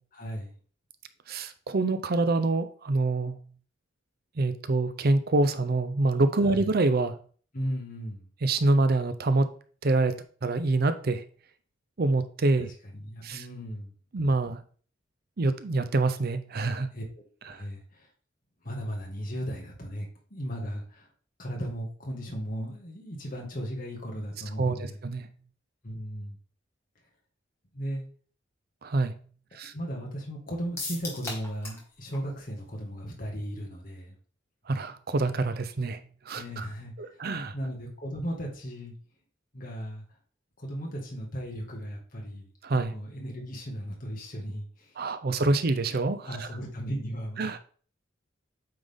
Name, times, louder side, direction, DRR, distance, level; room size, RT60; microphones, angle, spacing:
voice 1, 0.1-0.5 6.5-6.7 7.5-8.3 12.6-13.9 16.9-18.1 18.6-21.1 21.4-25.0 25.8-26.4 27.7-28.0 29.7-34.2 36.3-37.2 37.5-38.9 39.5-40.0 40.6-42.5 42.9-45.0 46.2-47.5, equal, 45° left, -1 dB, 1.9 m, -36 dB
voice 2, 1.3-3.4 4.4-7.2 8.4-9.5 9.8-11.2 12.0-12.7 13.2-13.4 14.1-14.6 15.4-16.9 17.5-17.6 24.6-25.3 28.8-29.1 29.5-29.7 34.7-36.0 36.3-36.7 37.0-37.5 42.6-42.9 45.0-46.5 47.4-47.6, right 2 dB, 50° right, 11 dB, 0.6 m, -26 dB
sound 1, 30.8-31.9 32.1-32.2 32.6-32.7, left 2 dB, 15° left, 1.8 m, -36 dB
8.7 x 3.8 x 3.6 m, 0.44 s
head